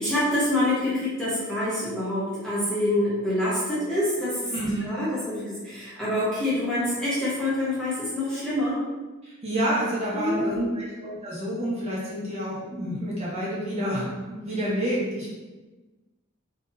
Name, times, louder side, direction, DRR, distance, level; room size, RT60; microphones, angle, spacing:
voice 1, 0.0-4.5 4.8-8.8 10.1-10.6, left 1 dB, 5° left, -10 dB, 0.7 m, -26 dB
voice 2, 4.5-4.9 9.2-15.3, equal, 30° right, -7 dB, 0.8 m, -29 dB
3.7 x 2.6 x 2.6 m, 1.2 s
head